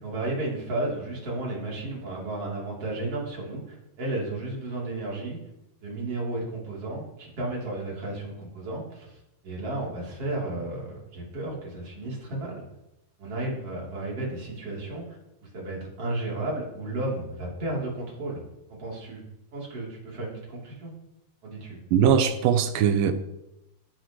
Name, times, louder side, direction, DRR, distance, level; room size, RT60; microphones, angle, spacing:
voice 1, 0.0-5.4 5.8-12.6 13.2-15.2 15.5-18.4 18.7-19.2 19.5-20.9 21.4-21.8, right 2 dB, 40° right, -3 dB, 4.1 m, -33 dB
voice 2, 21.9-23.1, right 8 dB, 75° right, 10 dB, 2.2 m, -21 dB
17.5 x 10.0 x 3.2 m, 0.87 s
omnidirectional pair, 4.6 m